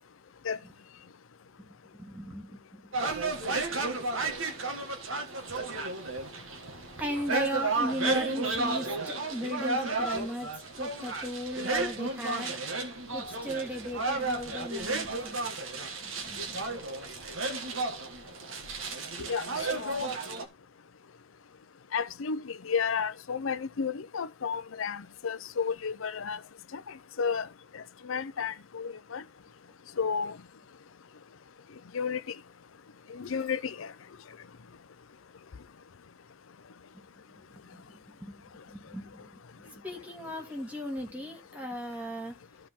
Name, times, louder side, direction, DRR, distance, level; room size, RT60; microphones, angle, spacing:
voice 1, 1.6-3.3 7.0-12.6 13.1-15.4 16.0-16.8 36.9-42.3, equal, 10° right, 2.3 m, -37 dB
sound 1, 2.9-20.5, right 3 dB, 80° right, 1.9 m, -33 dB
voice 2, 19.7-20.1 21.9-26.4 26.7-26.8 27.2-27.5 27.7-29.2 30.0-30.4 31.9-32.3 33.1-33.9, left 6 dB, 85° left, 0.6 m, -32 dB
14.5 x 4.9 x 3.7 m
head